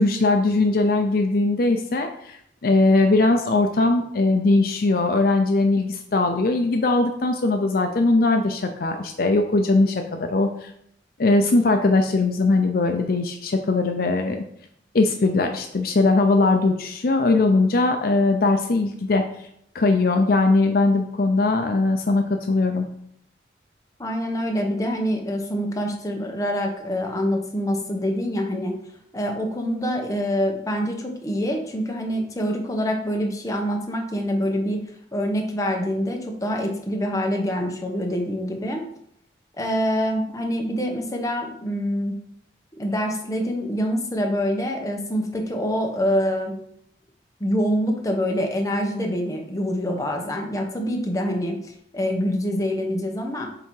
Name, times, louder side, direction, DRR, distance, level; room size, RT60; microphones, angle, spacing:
voice 1, 0.0-2.4 2.6-10.7 11.2-14.4 14.9-19.2 19.7-22.9, left 2 dB, 55° left, 5 dB, 0.5 m, -20 dB
voice 2, 24.0-28.7 29.1-34.8 35.1-38.8 39.6-42.2 42.8-46.5 47.4-53.5, equal, 20° left, 1 dB, 0.8 m, -25 dB
7.7 x 2.8 x 4.6 m, 0.71 s
head